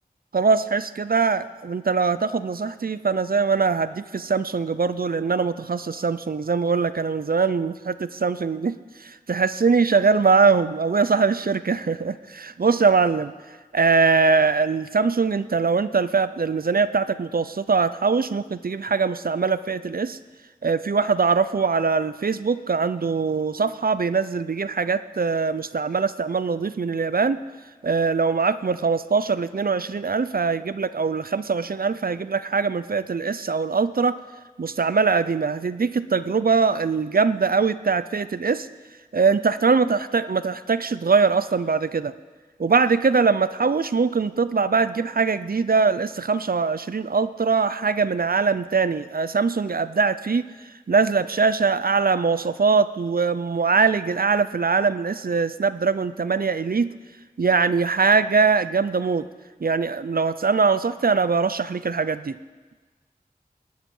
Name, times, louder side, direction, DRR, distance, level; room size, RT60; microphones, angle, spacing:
voice 1, 0.3-8.8 9.0-13.3 13.7-20.2 20.6-27.4 27.8-34.2 34.6-38.7 39.1-42.1 42.6-50.4 50.9-56.9 57.4-59.3 59.6-62.4, right 5 dB, 75° right, 14 dB, 0.5 m, -22 dB
18.0 x 10.5 x 5.4 m, 1.3 s
wide cardioid pair, 40°, 15 cm